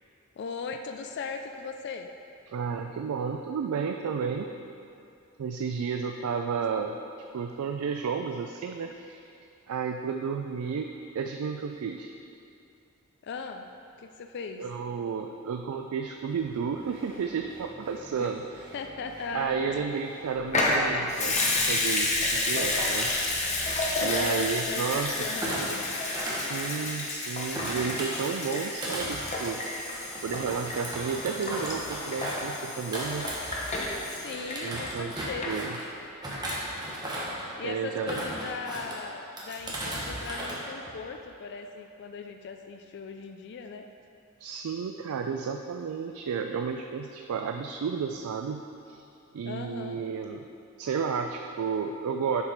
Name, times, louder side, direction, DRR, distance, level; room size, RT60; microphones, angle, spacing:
voice 1, 0.4-2.1 6.7-6.9 13.2-13.7 14.0-14.6 18.2-18.3 18.7-19.9 24.1-25.6 34.2-35.6 37.6-43.9 49.5-50.0, left 4 dB, 50° left, 5 dB, 0.3 m, -38 dB
voice 2, 2.5-4.5 5.4-7.0 7.3-9.3 9.7-10.9 11.1-12.1 14.6-18.7 19.3-23.1 24.0-25.8 26.3-29.6 30.2-33.3 34.6-35.7 37.6-38.2 44.4-49.0 49.3-50.4 50.8-52.4, right 6 dB, 90° right, 4 dB, 0.3 m, -32 dB
sound 1, 16.3-24.3, right 1 dB, 55° right, 1.7 m, -50 dB
Water tap faucet / Sink (filling or washing) / Liquid, 20.5-35.1 35.4-35.5, left 2 dB, 35° left, 0.9 m, -30 dB
Thump thud, 25.3-27.1 27.5-33.9 34.2-35.8 36.2-37.4 37.9-39.0 39.4-40.6 40.9-41.2, right 1 dB, 20° right, 1.2 m, -36 dB
7.3 x 4.8 x 5.2 m, 2.6 s
head